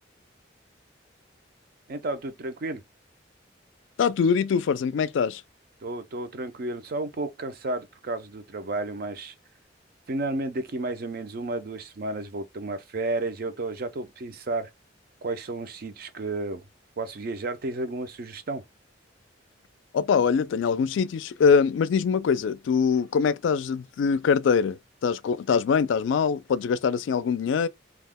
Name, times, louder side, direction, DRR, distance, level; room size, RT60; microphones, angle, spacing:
voice 1, 1.9-2.8 5.8-9.3 10.1-14.7 15.2-16.6 17.0-18.6, right 2 dB, 50° right, 0.5 m, -32 dB
voice 2, 4.0-5.4 19.9-27.7, left 6 dB, 75° left, 0.3 m, -23 dB
2.4 x 2.1 x 3.4 m
head